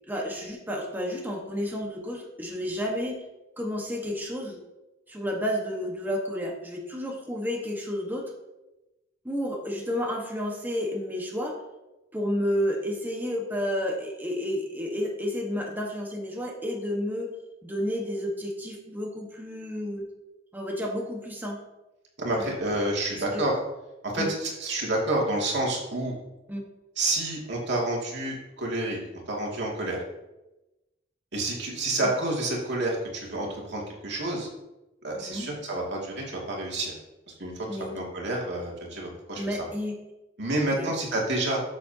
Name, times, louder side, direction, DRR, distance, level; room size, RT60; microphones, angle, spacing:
voice 1, 0.1-3.2 3.6-4.6 5.1-8.3 9.2-11.6 12.1-17.3 17.6-20.0 20.5-21.6 22.4-22.5 23.1-23.2 24.2-24.3 26.5-26.6 32.0-32.1 35.2-35.5 37.7-37.9 39.4-39.9 40.7-40.9, equal, 10° right, -1 dB, 1.4 m, -31 dB
voice 2, 22.2-23.5 24.0-26.2 27.0-29.0 29.3-30.0 31.3-34.5 35.0-36.9 37.4-37.7 37.9-39.7 40.4-41.6, right 2 dB, 60° right, -2 dB, 2.5 m, -29 dB
12.5 x 7.5 x 2.9 m, 1.0 s
head